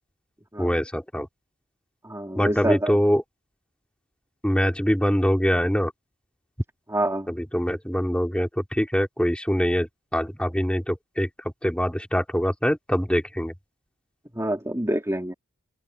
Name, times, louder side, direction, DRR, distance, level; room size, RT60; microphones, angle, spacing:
voice 1, 0.6-1.3 2.4-3.2 4.4-5.9 7.3-9.9 10.1-11.3 11.6-13.5, equal, 5° left, 3.7 m, -23 dB
voice 2, 2.0-2.9 6.9-7.3 14.3-15.3, right 1 dB, 15° right, 3.3 m, -26 dB
open air
head